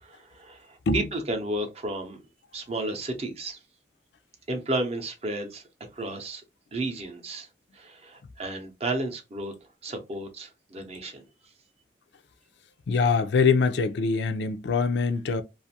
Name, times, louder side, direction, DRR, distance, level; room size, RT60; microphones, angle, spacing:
voice 1, 0.0-2.2 2.5-3.6 4.5-5.6 5.9-6.4 6.7-7.5 7.7-9.5 9.8-11.2, right 2 dB, 35° right, 0.6 m, -32 dB
voice 2, 12.9-15.4, left 4 dB, 75° left, 0.4 m, -23 dB
2.5 x 2.4 x 2.7 m
head